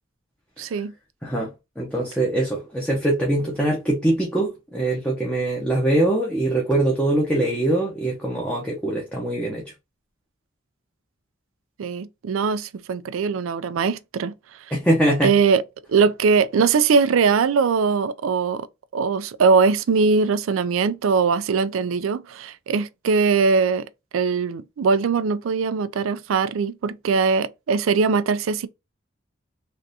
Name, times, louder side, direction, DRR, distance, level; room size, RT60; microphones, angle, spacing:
voice 1, 0.6-0.9 11.8-14.3 15.2-15.6 15.9-18.7 18.9-28.7, right 5 dB, 85° right, 0.4 m, -21 dB
voice 2, 1.2-9.7 14.7-15.3, right 1 dB, 5° left, 0.7 m, -23 dB
3.4 x 2.5 x 2.7 m
head